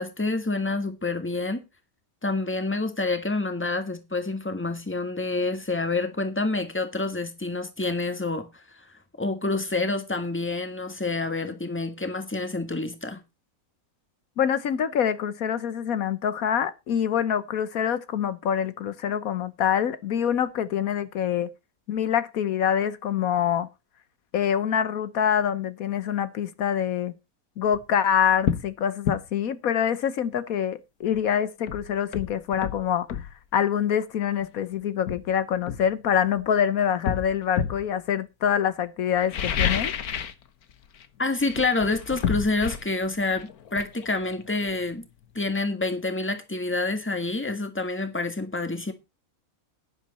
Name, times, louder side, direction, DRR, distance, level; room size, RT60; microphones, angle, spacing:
voice 1, 0.0-1.6 2.2-8.6 9.2-13.2 41.2-45.0 45.3-48.9, left 3 dB, 10° left, 1.6 m, -28 dB
voice 2, 14.4-21.5 21.9-23.7 24.3-27.1 27.6-39.9, left 8 dB, 75° left, 1.3 m, -25 dB
sound 1, 27.6-27.8 28.4-28.7 29.1-29.2 31.1-31.2 31.7-33.3 34.4-34.5 35.1-36.5 37.1-37.9 39.2-40.4 40.7-41.1 41.4-44.9 45.2-45.3, left 8 dB, 90° left, 1.6 m, -30 dB
11.0 x 10.5 x 4.1 m
omnidirectional pair, 1.5 m